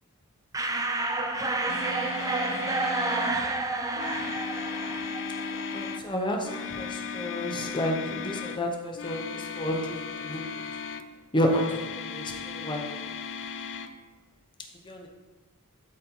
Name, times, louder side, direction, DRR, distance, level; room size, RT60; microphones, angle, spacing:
sound 1, 0.5-6.1, right 2 dB, 15° right, 0.5 m, -30 dB
sound 2, 1.7-3.4 3.9-6.0 6.4-8.7 8.9-11.1 11.5-13.9, left 5 dB, 55° left, 0.4 m, -36 dB
voice 1, 5.7-10.5 11.3-12.9 14.8-15.1, equal, 20° left, 1 dB, 0.9 m, -30 dB
11.5 x 4.1 x 3.0 m, 1.3 s
head